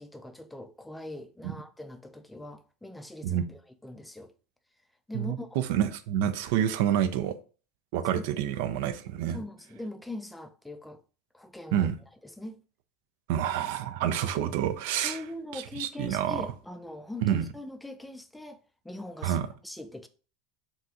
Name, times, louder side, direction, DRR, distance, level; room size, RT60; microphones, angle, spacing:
voice 1, 0.0-4.3 5.1-5.6 8.2-8.3 9.3-11.0 11.3-11.9 12.2-12.6 14.0-14.5 15.0-20.1, left 1 dB, 5° left, 0.3 m, -42 dB
voice 2, 5.1-7.4 7.9-9.4 11.7-12.0 13.3-15.2 15.5-16.5 17.2-17.4 19.2-19.5, right 10 dB, 70° right, 0.3 m, -28 dB
3.7 x 2.4 x 2.7 m
supercardioid pair, 110°, 0 cm